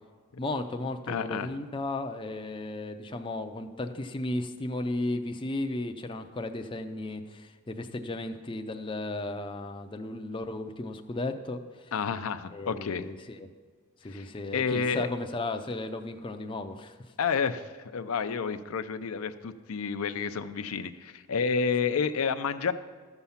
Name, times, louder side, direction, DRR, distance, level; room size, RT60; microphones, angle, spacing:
voice 1, 0.4-11.9 12.5-13.5 14.0-17.0, left 2 dB, 25° left, 6 dB, 0.5 m, -35 dB
voice 2, 1.1-1.5 11.9-13.0 14.0-15.1 17.2-22.7, left 5 dB, 70° left, 9 dB, 0.5 m, -30 dB
13.0 x 7.1 x 5.7 m, 1.5 s
head